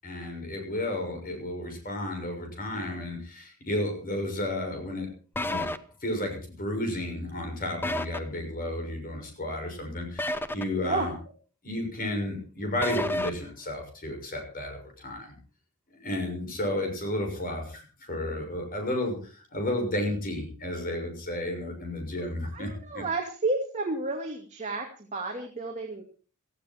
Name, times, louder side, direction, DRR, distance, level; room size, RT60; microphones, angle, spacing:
voice 1, 0.0-5.1 5.4-5.7 6.0-11.1 11.6-15.4 16.0-17.8 18.1-23.0, left 1 dB, 40° left, 3 dB, 6.5 m, -32 dB
sound 1, 5.4-5.8 7.8-8.2 10.2-10.6 12.8-13.3, left 1 dB, 10° left, 0.8 m, -29 dB
voice 2, 22.5-26.0, right 3 dB, 35° right, 2 dB, 2.4 m, -31 dB
17.5 x 15.0 x 4.5 m, 0.39 s
head